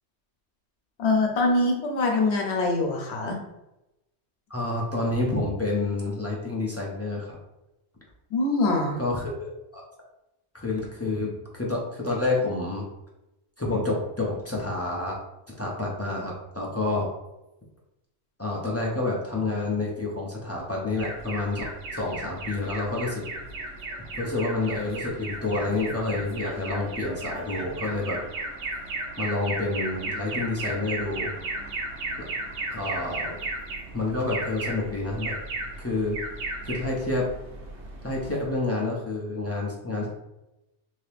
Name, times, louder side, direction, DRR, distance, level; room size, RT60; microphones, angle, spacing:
voice 1, 1.0-3.4 8.3-9.0, left 2 dB, 75° left, 2 dB, 1.0 m, -24 dB
voice 2, 4.5-7.4 9.0-9.8 10.5-12.9 13.6-15.2 15.6-17.1 18.4-23.2 24.2-28.2 29.2-31.4 32.2-32.3 32.7-33.4 33.9-35.4 35.8-36.2 36.6-37.3 38.0-40.1, left 2 dB, 20° left, -4 dB, 0.4 m, -28 dB
Alarm, 21.0-38.6, right 2 dB, 85° right, 1.1 m, -35 dB
2.8 x 2.8 x 3.3 m, 0.92 s
omnidirectional pair, 1.2 m